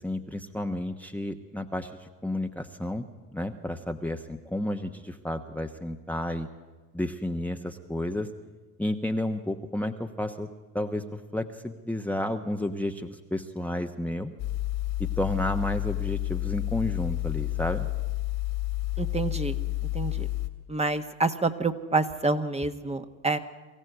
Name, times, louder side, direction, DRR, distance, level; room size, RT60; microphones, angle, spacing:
voice 1, 0.0-3.0 3.3-6.5 6.9-8.3 8.8-10.5 10.7-14.3 15.0-17.9, left 1 dB, 5° left, 5 dB, 1.2 m, -31 dB
sound 1, 14.4-20.5, left 17 dB, 60° left, 2.4 m, -30 dB
voice 2, 19.0-19.5 19.9-20.3 20.7-23.4, right 3 dB, 15° right, 7 dB, 1.4 m, -27 dB
23.5 x 15.5 x 8.0 m, 1.3 s
hypercardioid pair, 75°, 42 cm